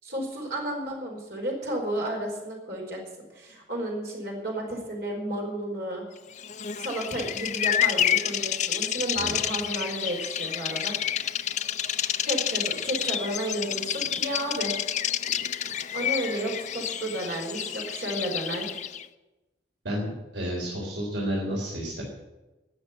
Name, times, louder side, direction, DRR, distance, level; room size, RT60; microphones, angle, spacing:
voice 1, 0.0-3.0 3.3-6.1 6.8-10.9 12.3-14.8 15.9-18.7, right 1 dB, 60° right, -1 dB, 4.7 m, -32 dB
Bird vocalization bird call bird song, 6.4-19.1, left 9 dB, 40° left, 0.5 m, -29 dB
voice 2, 19.8-22.0, equal, 80° right, -2 dB, 3.9 m, -31 dB
18.5 x 6.7 x 9.5 m, 1.1 s
head